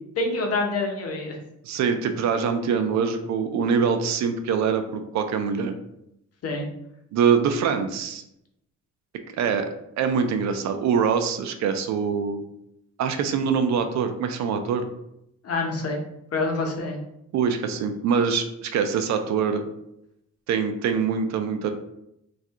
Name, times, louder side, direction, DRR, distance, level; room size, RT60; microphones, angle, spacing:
voice 1, 0.2-1.4 6.4-6.7 15.4-16.0 16.3-17.0, left 3 dB, 55° left, 1 dB, 0.8 m, -26 dB
voice 2, 1.6-5.8 7.1-8.2 9.4-9.7 10.0-12.4 13.0-14.9 17.3-19.7 20.5-21.7, right 6 dB, 65° right, 8 dB, 0.5 m, -24 dB
2.6 x 2.4 x 3.5 m, 0.81 s
cardioid pair, 90°, 30 cm